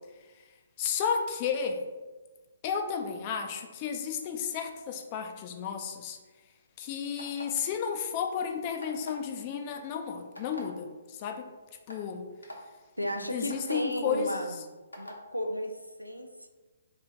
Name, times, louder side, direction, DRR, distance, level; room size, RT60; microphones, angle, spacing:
voice 1, 0.8-1.8 2.6-6.2 6.8-11.5 11.9-12.2 13.1-14.4, left 7 dB, 30° left, 5 dB, 0.4 m, -32 dB
sound 1, 7.2-7.6 8.8-9.2 10.4-10.6 11.4-11.5 11.9-12.0 12.4-12.6 13.5-13.7 14.9-15.2, equal, 80° left, 0.8 m, -43 dB
voice 2, 13.0-14.7 15.0-16.5, equal, 90° right, 5 dB, 0.4 m, -34 dB
3.1 x 3.0 x 3.8 m, 1.2 s
figure-of-eight pair, 130°, 0 cm